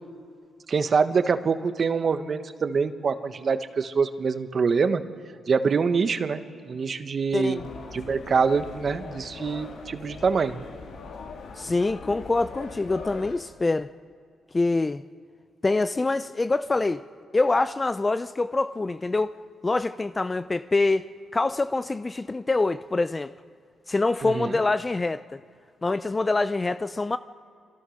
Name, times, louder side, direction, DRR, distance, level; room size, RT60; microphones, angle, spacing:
voice 1, 0.7-5.0 5.5-7.6 7.9-10.6 24.2-24.6, right 5 dB, 50° right, 1.4 m, -25 dB
voice 2, 7.3-7.6 11.6-13.9 14.5-15.0 15.6-17.0 17.3-19.3 19.6-21.1 21.3-23.3 23.9-25.2 25.8-27.2, left 3 dB, 25° left, 0.5 m, -25 dB
sound 1, 7.5-13.3, left 4 dB, 80° left, 2.9 m, -41 dB
28.5 x 23.5 x 6.6 m
cardioid pair, 75°, 0 cm